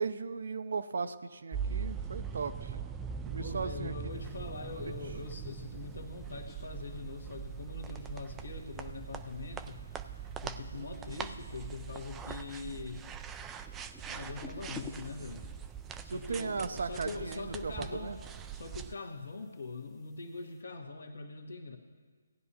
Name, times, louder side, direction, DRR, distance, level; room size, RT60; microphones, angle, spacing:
voice 1, 0.0-2.8 3.3-3.9 10.7-11.2 16.1-18.2, right 5 dB, 60° right, 11 dB, 0.6 m, -37 dB
sound 1, 1.5-19.0, right 7 dB, 10° right, 0.3 m, -42 dB
voice 2, 3.4-9.8 10.4-13.0 14.1-15.4 16.0-18.2 18.5-21.8, left 3 dB, 65° left, 4 dB, 1.4 m, -42 dB
sound 2, 4.1-20.6, left 3 dB, 10° left, 0.8 m, -56 dB
17.5 x 10.0 x 2.9 m, 1.5 s
figure-of-eight pair, 145°, 0 cm